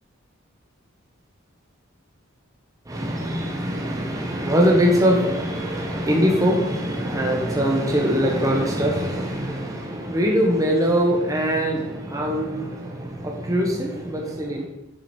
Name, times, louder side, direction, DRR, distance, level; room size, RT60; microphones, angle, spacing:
voice 1, 2.9-14.7, equal, 15° right, 0 dB, 0.8 m, -22 dB
7.3 x 4.7 x 4.3 m, 0.96 s
head